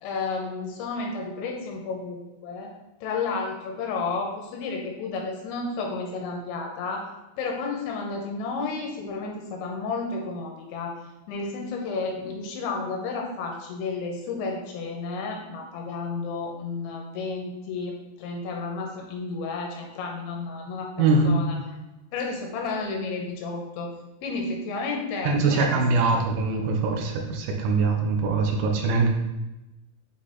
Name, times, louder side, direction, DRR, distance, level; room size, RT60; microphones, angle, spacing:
voice 1, 0.0-7.1 7.4-21.8 22.1-23.9 24.2-26.2, left 4 dB, 80° left, 0 dB, 3.0 m, -32 dB
voice 2, 21.0-21.4 25.2-29.1, right 3 dB, 80° right, 1 dB, 3.0 m, -22 dB
8.3 x 3.9 x 3.8 m, 1.0 s
omnidirectional pair, 5.8 m